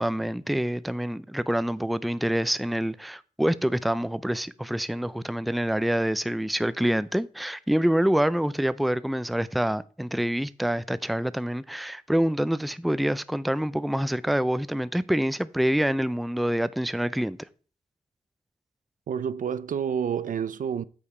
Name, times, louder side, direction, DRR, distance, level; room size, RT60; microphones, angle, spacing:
voice 1, 0.0-17.4, equal, ahead, 0.5 m, -26 dB
voice 2, 19.1-20.8, right 7 dB, 65° right, 0.5 m, -29 dB
8.6 x 4.7 x 4.3 m
supercardioid pair, 45°, 15 cm